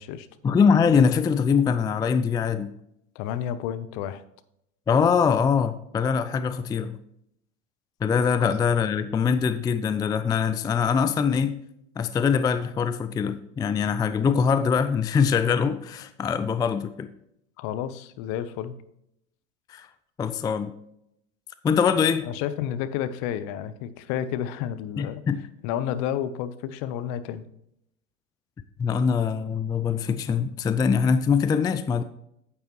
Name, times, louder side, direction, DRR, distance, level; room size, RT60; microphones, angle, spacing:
voice 1, 0.4-2.7 4.9-7.0 8.0-11.6 12.0-17.1 19.7-19.9 20.2-20.7 21.6-22.3 25.0-25.4 28.8-32.0, left 6 dB, 10° left, 11 dB, 0.3 m, -23 dB
voice 2, 3.1-4.2 17.6-18.7 22.2-25.2 25.6-27.4, left 10 dB, 50° left, 13 dB, 0.9 m, -31 dB
9.3 x 8.6 x 3.1 m, 0.76 s
hypercardioid pair, 90°, 38 cm